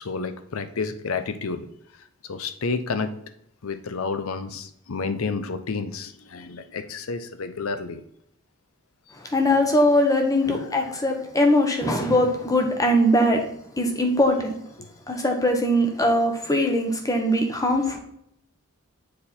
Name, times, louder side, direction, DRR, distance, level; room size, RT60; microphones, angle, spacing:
voice 1, 0.0-1.7 2.3-3.1 3.6-8.0 10.4-10.9 13.8-13.9 14.8-14.9, left 4 dB, 70° left, 10 dB, 0.6 m, -30 dB
voice 2, 9.3-13.4 13.8-14.5 15.1-18.0, left 1 dB, 15° left, 3 dB, 1.0 m, -21 dB
7.5 x 4.3 x 4.2 m, 0.72 s
head